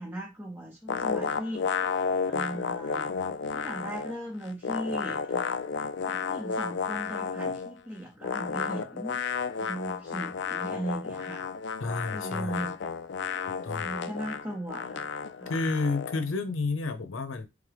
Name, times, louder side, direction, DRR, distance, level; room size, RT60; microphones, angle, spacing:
voice 1, 0.0-1.7 2.3-3.1 3.5-5.5 6.0-9.2 9.6-11.4 12.1-12.8 13.8-15.1 15.4-15.5, right 1 dB, 10° right, 0.7 m, -38 dB
sound 1, 0.9-4.2 4.4-7.7 8.2-16.2, left 6 dB, 60° left, 0.3 m, -32 dB
voice 2, 11.8-12.7 13.6-13.9 15.5-17.5, left 3 dB, 80° left, 0.7 m, -30 dB
3.6 x 3.5 x 3.4 m
head